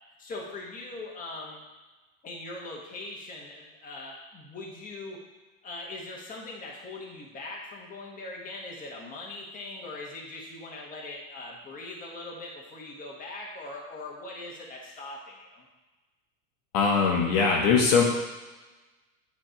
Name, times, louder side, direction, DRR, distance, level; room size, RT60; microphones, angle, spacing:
voice 1, 0.2-1.6 2.2-5.2 5.6-15.6, left 2 dB, 20° left, -3 dB, 1.4 m, -41 dB
voice 2, 16.7-18.0, left 5 dB, 50° left, -1 dB, 1.2 m, -21 dB
7.8 x 3.5 x 4.5 m, 1.2 s
supercardioid pair, 125°, 43 cm